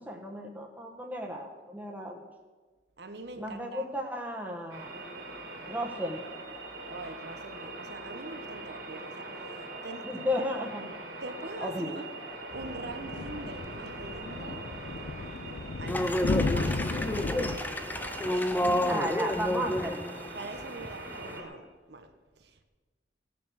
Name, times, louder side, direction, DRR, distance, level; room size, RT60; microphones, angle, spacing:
voice 1, 0.0-2.2 3.4-4.9 5.7-6.2 10.0-10.8 11.6-12.0 18.6-20.1, left 1 dB, 10° right, 1.4 m, -34 dB
voice 2, 3.0-3.9 6.9-10.6 11.2-12.1 12.5-14.7 15.8-17.3 18.3-19.4 20.3-22.6, right 2 dB, 65° right, 1.0 m, -44 dB
sound 1, 4.7-21.4, right 2 dB, 80° right, 3.0 m, -42 dB
sound 2, 12.5-17.6, left 3 dB, 60° left, 0.5 m, -34 dB
sound 3, 15.9-21.4, left 1 dB, 10° left, 0.5 m, -30 dB
16.5 x 6.8 x 6.4 m
head